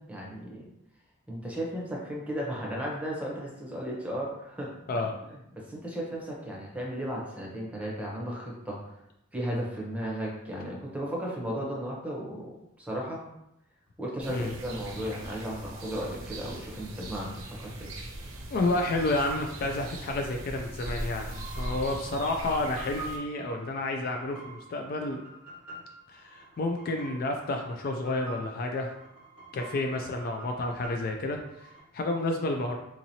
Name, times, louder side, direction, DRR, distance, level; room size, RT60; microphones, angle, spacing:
voice 1, 0.1-0.7 1.3-5.1 5.6-8.9 9.3-13.2 14.0-17.9, equal, 5° right, -4 dB, 0.7 m, -35 dB
sound 1, 14.2-23.2, right 1 dB, 70° right, 0.7 m, -40 dB
voice 2, 18.5-25.2 26.1-28.9 29.5-32.8, left 2 dB, 45° left, 3 dB, 0.3 m, -30 dB
sound 2, 21.0-31.8, right 2 dB, 85° left, 1.5 m, -47 dB
3.8 x 2.9 x 2.7 m, 0.84 s
head